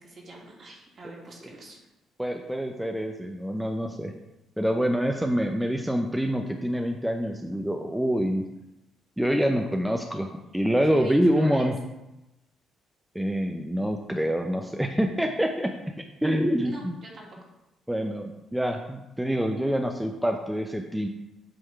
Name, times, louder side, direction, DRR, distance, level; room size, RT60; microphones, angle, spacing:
voice 1, 0.0-1.8 10.8-11.7 16.6-17.5, right 2 dB, 50° right, -2 dB, 2.2 m, -43 dB
voice 2, 2.2-4.1 4.6-8.5 9.2-11.8 13.1-15.7 16.2-17.0 17.9-21.1, equal, 5° right, 3 dB, 0.6 m, -26 dB
8.3 x 3.6 x 4.7 m, 0.96 s
supercardioid pair, 70°, 0 cm